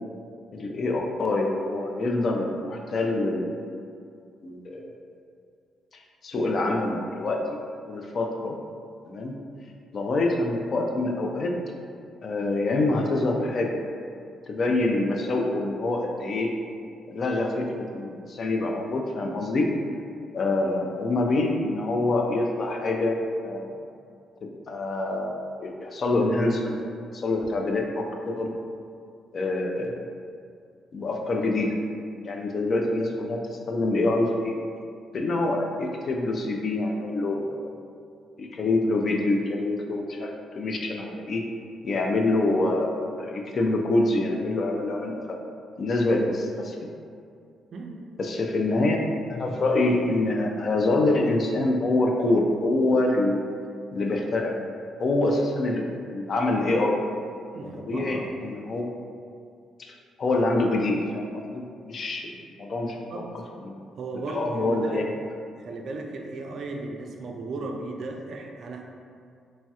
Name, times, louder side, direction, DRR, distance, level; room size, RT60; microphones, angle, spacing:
voice 1, 0.5-3.4 4.4-4.8 6.2-7.6 7.9-8.6 9.1-9.4 9.9-11.5 12.2-13.8 14.5-16.5 17.1-19.7 20.3-23.2 23.4-23.7 24.4-28.5 29.3-30.0 30.9-31.7 32.2-34.5 35.1-37.7 38.4-41.4 41.8-45.4 45.8-46.8 48.2-49.0 49.3-53.4 53.9-54.5 55.0-55.8 56.1-57.0 57.8-59.0 60.2-62.3 62.6-63.2 63.7-63.8 64.3-65.0, left 2 dB, 50° left, 1 dB, 0.3 m, -26 dB
voice 2, 47.7-48.1 57.5-58.3 62.8-63.3 64.0-65.0 65.6-68.9, right 3 dB, 60° right, 2 dB, 0.3 m, -36 dB
3.1 x 2.7 x 2.3 m, 2.3 s
cardioid pair, 90°, 0 cm